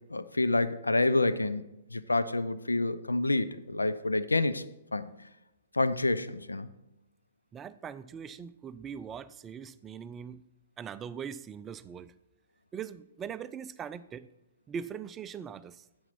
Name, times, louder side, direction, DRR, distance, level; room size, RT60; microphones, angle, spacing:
voice 1, 0.1-4.6 4.9-5.1 5.7-6.7, left 2 dB, 85° left, 13 dB, 0.5 m, -28 dB
voice 2, 7.5-10.4 10.8-12.1 12.7-14.3 14.7-15.8, right 7 dB, 20° right, 15 dB, 0.4 m, -41 dB
9.9 x 7.8 x 4.2 m, 0.93 s
figure-of-eight pair, 120°, 0 cm